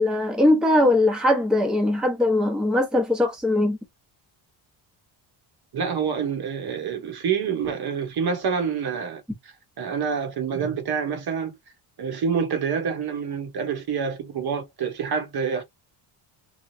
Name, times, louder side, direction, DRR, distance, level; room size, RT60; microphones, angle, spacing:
voice 1, 0.0-3.8, left 1 dB, ahead, 0.8 m, -20 dB
voice 2, 5.7-11.6 12.0-15.6, right 6 dB, 50° right, 1.0 m, -27 dB
3.2 x 2.3 x 2.5 m
cardioid pair, 125°, 49 cm